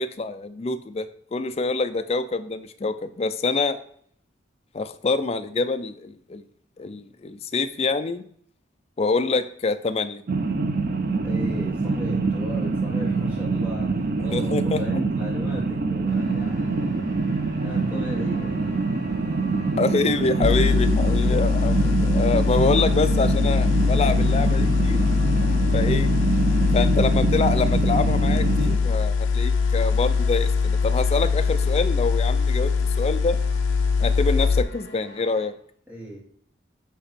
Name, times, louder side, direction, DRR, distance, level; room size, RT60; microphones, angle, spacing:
voice 1, 0.0-3.8 4.7-6.4 6.8-8.2 9.0-10.2 14.3-14.8 19.8-25.0 25.7-26.1 26.7-32.7 33.0-33.4 34.0-35.5, left 3 dB, 30° left, 9 dB, 0.4 m, -26 dB
sound 1, 10.3-28.8, right 3 dB, 45° right, 0.5 m, -25 dB
voice 2, 11.2-17.0 17.6-18.6 35.9-36.2, equal, 10° right, -4 dB, 1.5 m, -35 dB
sound 2, 16.1-35.5, left 2 dB, 65° left, 2.8 m, -45 dB
sound 3, 20.4-34.6, left 5 dB, 85° left, 0.5 m, -22 dB
8.5 x 2.9 x 4.1 m, 0.63 s
head